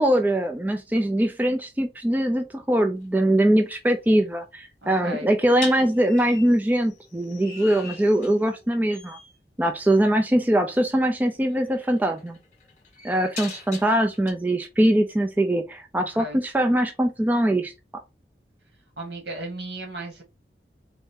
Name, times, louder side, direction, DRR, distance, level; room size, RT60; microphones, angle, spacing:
voice 1, 0.0-9.2 9.6-12.4 13.0-17.7, right 1 dB, 10° right, 0.4 m, -22 dB
sound 1, 3.0-3.2 5.6-8.6 8.9-9.3 10.8-11.0 11.5-14.3, left 4 dB, 40° left, 1.5 m, -41 dB
voice 2, 4.8-5.3 16.2-16.4 19.0-20.2, right 1 dB, 80° right, 2.0 m, -35 dB
4.0 x 2.7 x 3.6 m
head